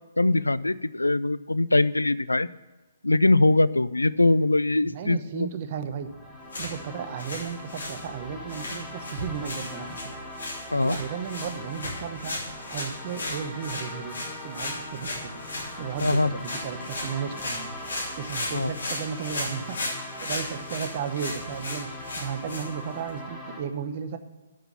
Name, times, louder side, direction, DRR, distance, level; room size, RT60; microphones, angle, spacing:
voice 1, 0.2-2.5 3.0-5.5 10.7-11.0 16.0-16.4 18.5-18.7, left 2 dB, 90° left, 19 dB, 0.3 m, -22 dB
voice 2, 4.8-6.1 6.6-10.0 10.7-12.4 12.7-14.2 14.4-15.4 15.8-17.7 18.2-21.9 22.2-24.2, right 7 dB, 40° right, 9 dB, 0.9 m, -34 dB
sound 1, 5.9-23.6, left 1 dB, 5° left, 1.4 m, -41 dB
sound 2, 6.4-23.2, left 2 dB, 70° left, 3.4 m, -36 dB
8.3 x 6.1 x 7.1 m, 1.2 s
figure-of-eight pair, 135°, 0 cm